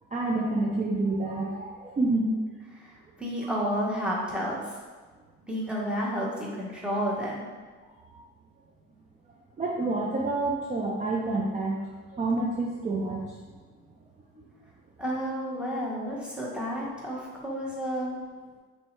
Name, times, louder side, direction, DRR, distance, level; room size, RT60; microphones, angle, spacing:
voice 1, 0.1-2.4 3.4-3.5 8.1-8.2 9.6-11.8 12.1-13.2 14.4-14.5, right 2 dB, 25° right, -2 dB, 0.4 m, -28 dB
voice 2, 2.8-4.6 5.5-7.5 15.0-18.1, equal, 5° right, -5 dB, 1.0 m, -31 dB
3.2 x 2.7 x 4.3 m, 1.4 s
cardioid pair, 90°, 30 cm